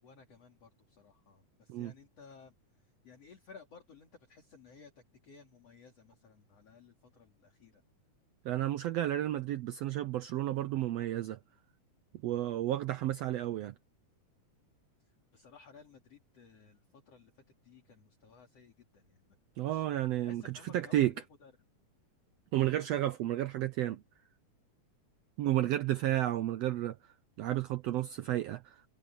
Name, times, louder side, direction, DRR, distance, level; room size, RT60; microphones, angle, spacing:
voice 1, 0.0-7.8 15.0-19.9 20.2-21.5, left 5 dB, 50° left, 3.7 m, -57 dB
voice 2, 8.4-11.4 12.2-13.7 19.6-21.1 22.5-24.0 25.4-28.8, right 13 dB, 90° right, 1.4 m, -32 dB
omnidirectional pair, 3.7 m